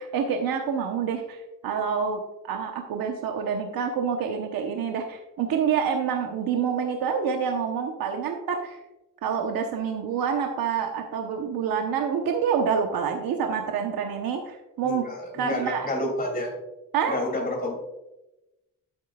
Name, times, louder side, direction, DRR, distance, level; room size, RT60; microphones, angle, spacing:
voice 1, 0.0-8.8 9.2-15.0 15.3-15.9 16.9-17.2, right 6 dB, 90° right, 3 dB, 1.0 m, -27 dB
voice 2, 14.8-16.5 17.1-17.7, left 1 dB, 25° left, 0 dB, 2.7 m, -29 dB
12.0 x 8.6 x 2.3 m, 0.96 s
wide cardioid pair, 170°, 34 cm